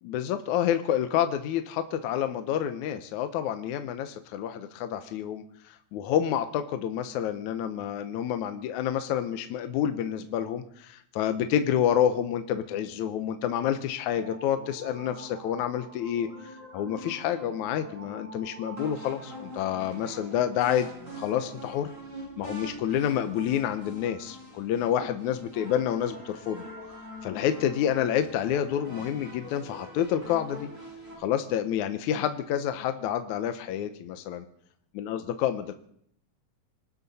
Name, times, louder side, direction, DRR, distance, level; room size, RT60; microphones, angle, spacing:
voice 1, 0.0-5.4 5.9-16.3 16.7-20.9 21.2-21.9 22.4-26.6 27.2-30.7 31.2-34.4 34.9-35.7, left 10 dB, 75° left, 9 dB, 2.1 m, -28 dB
sound 1, 14.1-31.2, equal, 20° right, 8.3 m, -44 dB
25.5 x 12.5 x 4.2 m, 0.68 s
omnidirectional pair, 3.8 m